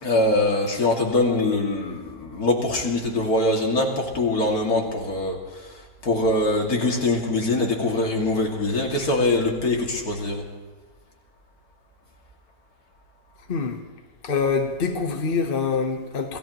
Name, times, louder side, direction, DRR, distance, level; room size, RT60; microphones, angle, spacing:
voice 1, 0.0-5.4 6.0-10.4, left 2 dB, 60° left, 2.8 m, -23 dB
voice 2, 13.5-13.8 14.2-16.4, left 5 dB, 40° left, 1.1 m, -25 dB
27.0 x 17.0 x 3.0 m
omnidirectional pair, 1.8 m